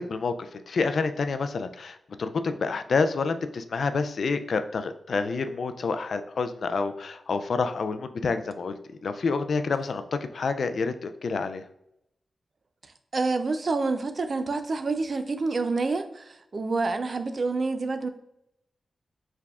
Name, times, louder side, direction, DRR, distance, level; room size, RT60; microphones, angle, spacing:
voice 1, 0.0-8.8 9.0-10.0 10.3-11.6, left 4 dB, 60° left, 9 dB, 0.3 m, -28 dB
voice 2, 12.8-18.1, right 3 dB, 40° right, 8 dB, 0.4 m, -28 dB
4.7 x 3.4 x 2.4 m, 0.80 s
wide cardioid pair, 155°, 0 cm